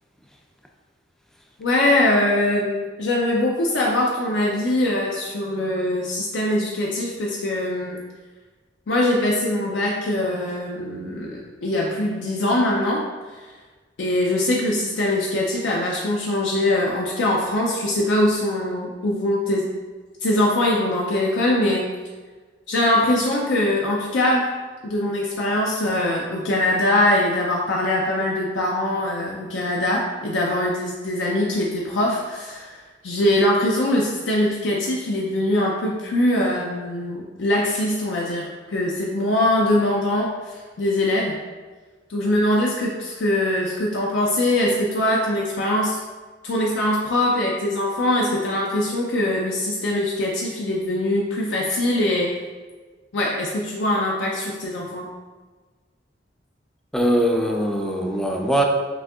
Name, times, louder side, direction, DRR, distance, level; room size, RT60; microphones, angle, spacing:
voice 1, 1.6-8.0 8.9-13.0 14.0-19.7 20.2-21.9 22.7-24.5 24.8-41.4 42.1-46.0 46.4-52.3 53.1-55.1, left 1 dB, 75° left, -3 dB, 0.5 m, -22 dB
voice 2, 56.9-58.6, equal, 5° left, 1 dB, 0.3 m, -21 dB
6.0 x 2.7 x 2.3 m, 1.3 s
head